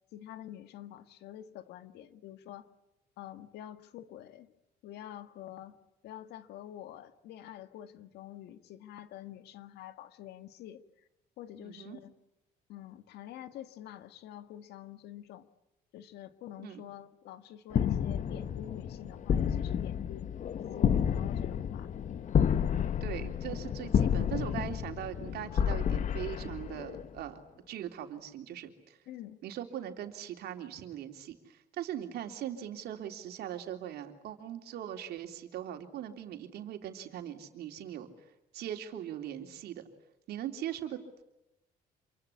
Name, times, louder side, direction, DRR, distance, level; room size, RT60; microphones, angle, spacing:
voice 1, 0.1-2.7 3.2-4.5 4.8-5.8 6.0-10.8 11.4-12.1 12.7-15.5 15.9-20.3 20.6-21.9 29.1-29.4, left 12 dB, 80° left, 11 dB, 1.8 m, -47 dB
voice 2, 11.6-12.0 16.6-16.8 23.0-27.4 27.7-29.0 29.4-38.1 38.5-39.8 40.3-41.2, right 10 dB, 70° right, 5 dB, 3.5 m, -40 dB
sound 1, 17.7-27.2, left 8 dB, 45° left, 1.0 m, -30 dB
27.5 x 24.0 x 8.6 m, 0.90 s
cardioid pair, 110°, 17 cm